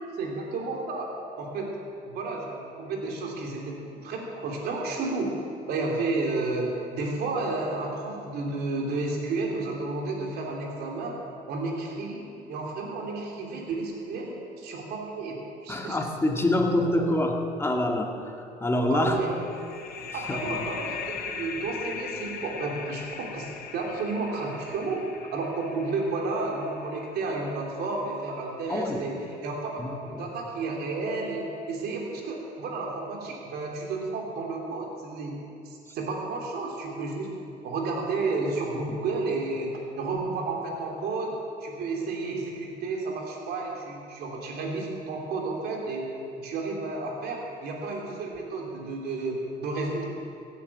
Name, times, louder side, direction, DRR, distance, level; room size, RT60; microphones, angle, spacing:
voice 1, 0.0-1.8 2.0-5.3 5.7-11.2 11.5-16.0 16.8-17.0 18.9-19.3 20.1-25.0 25.3-37.3 37.6-50.1, right 3 dB, 70° right, 0 dB, 3.1 m, -32 dB
voice 2, 15.7-19.2 20.1-20.6 28.7-29.0 29.8-30.3 38.9-39.0, left 1 dB, 15° left, 2 dB, 1.8 m, -26 dB
sound 1, 19.2-28.5, left 6 dB, 65° left, 1.2 m, -40 dB
16.0 x 9.6 x 7.6 m, 2.6 s
cardioid pair, 110°, 17 cm